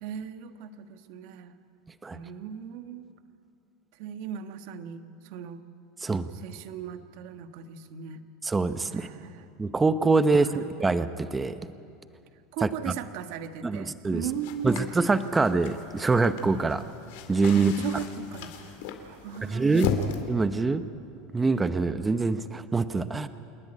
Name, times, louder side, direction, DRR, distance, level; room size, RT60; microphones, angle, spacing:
voice 1, 0.0-1.6 2.1-3.1 3.9-5.6 6.3-8.2 8.9-9.5 10.3-10.7 12.5-14.8 17.5-19.9, right 9 dB, 65° right, 9 dB, 1.3 m, -38 dB
voice 2, 8.4-9.1 9.6-11.6 12.6-12.7 13.6-14.2 14.6-16.8 17.3-17.7 19.5-20.0 20.3-20.9 21.3-23.3, right 3 dB, 15° right, 12 dB, 0.8 m, -24 dB
sound 1, 14.3-20.2, left 7 dB, 75° left, 2.2 m, -36 dB
27.5 x 10.5 x 10.0 m, 2.6 s
supercardioid pair, 135°, 0 cm